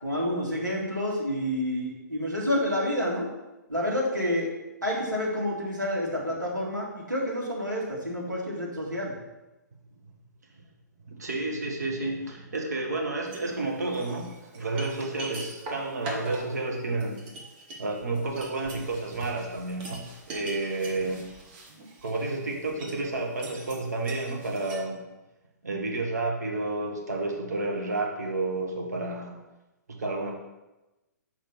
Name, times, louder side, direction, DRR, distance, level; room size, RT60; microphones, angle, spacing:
voice 1, 0.0-3.3 3.7-4.5 4.8-9.2, left 1 dB, 85° right, -4 dB, 1.8 m, -29 dB
voice 2, 11.1-17.2 17.8-21.2 22.0-25.0 25.6-29.4 29.9-30.3, right 2 dB, 65° right, 0 dB, 1.2 m, -31 dB
sound 1, 13.3-13.5 13.9-24.8, right 2 dB, 30° right, 1.2 m, -43 dB
5.0 x 3.5 x 5.6 m, 1.0 s
figure-of-eight pair, 120°, 10 cm